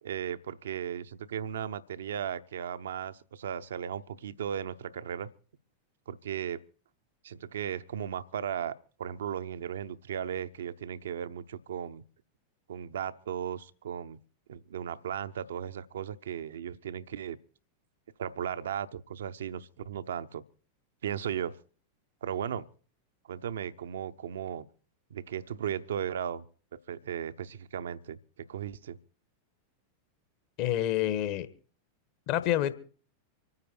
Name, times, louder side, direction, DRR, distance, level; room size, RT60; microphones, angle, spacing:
voice 1, 0.0-5.3 6.1-6.6 7.2-12.0 12.7-14.2 14.5-17.4 18.2-20.4 21.0-21.6 22.2-22.7 23.3-24.7 25.1-26.4 26.9-29.0, right 9 dB, 65° right, 0.7 m, -36 dB
voice 2, 30.6-31.5 32.3-32.7, left 12 dB, 45° left, 1.4 m, -28 dB
25.5 x 9.7 x 4.5 m
figure-of-eight pair, 90°, 0 cm